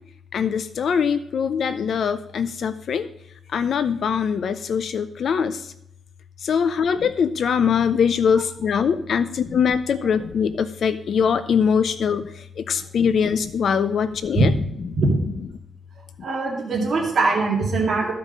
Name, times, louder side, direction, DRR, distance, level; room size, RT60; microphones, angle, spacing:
voice 1, 0.3-3.1 3.5-5.7 6.4-14.5, left 7 dB, 60° left, 11 dB, 0.5 m, -22 dB
voice 2, 16.2-18.1, right 3 dB, 50° right, -2 dB, 2.0 m, -21 dB
14.0 x 5.1 x 5.3 m, 0.78 s
wide cardioid pair, 140°, 0 cm